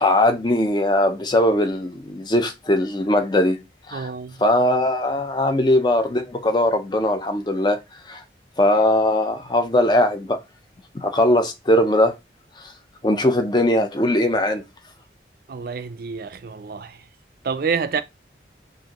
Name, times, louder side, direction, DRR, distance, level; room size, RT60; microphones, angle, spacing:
voice 1, 0.0-3.6 3.9-4.1 4.4-7.8 8.1-8.2 8.6-10.4 10.9-12.1 12.6-12.7 13.0-14.6, left 1 dB, 25° left, 0.5 m, -20 dB
voice 2, 3.9-4.4 15.5-17.0 17.4-18.0, right 5 dB, 50° right, 0.4 m, -28 dB
4.9 x 2.6 x 2.9 m
head